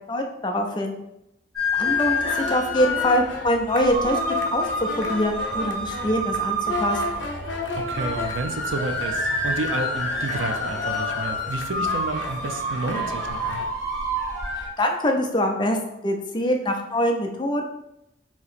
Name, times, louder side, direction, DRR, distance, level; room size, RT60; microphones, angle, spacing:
voice 1, 0.1-1.0 1.7-7.0 14.5-15.8 16.0-17.6, equal, 25° left, 3 dB, 0.5 m, -24 dB
sound 1, 1.6-14.7, left 1 dB, ahead, 1.4 m, -28 dB
sound 2, 1.8-13.7, left 3 dB, 75° left, 0.7 m, -33 dB
voice 2, 7.8-13.6, right 3 dB, 90° right, 6 dB, 0.5 m, -30 dB
2.9 x 2.8 x 4.1 m, 0.83 s
head